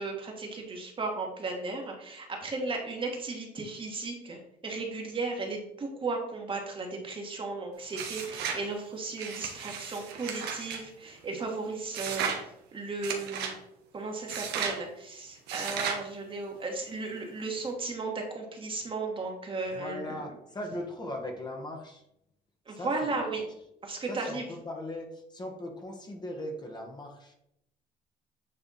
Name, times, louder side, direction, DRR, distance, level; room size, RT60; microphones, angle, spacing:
voice 1, 0.0-12.3 12.7-13.5 13.9-20.3 22.6-23.5 23.8-24.5, right 3 dB, 30° right, 1 dB, 1.5 m, -35 dB
sound 1, 7.9-8.6 9.2-10.8 11.9-12.4 13.0-13.6 14.3-14.8 15.5-16.0, right 6 dB, 80° right, 1.3 m, -34 dB
voice 2, 19.7-22.0 22.7-23.3 24.1-27.3, left 1 dB, 25° left, 2 dB, 1.3 m, -39 dB
8.7 x 3.4 x 4.2 m, 0.78 s
cardioid pair, 110°, 17 cm